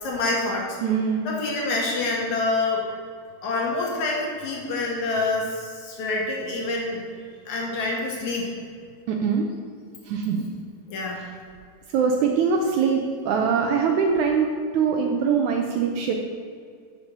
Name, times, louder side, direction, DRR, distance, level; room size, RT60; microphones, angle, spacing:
voice 1, 0.0-0.8 1.2-2.9 3.4-7.0 7.5-8.5 10.9-11.2, left 2 dB, 60° left, -2 dB, 2.9 m, -26 dB
voice 2, 0.8-1.3 9.1-9.5 10.1-10.5 11.9-16.1, right 6 dB, 75° right, 2 dB, 1.9 m, -23 dB
6.9 x 6.0 x 6.6 m, 2.1 s
omnidirectional pair, 3.9 m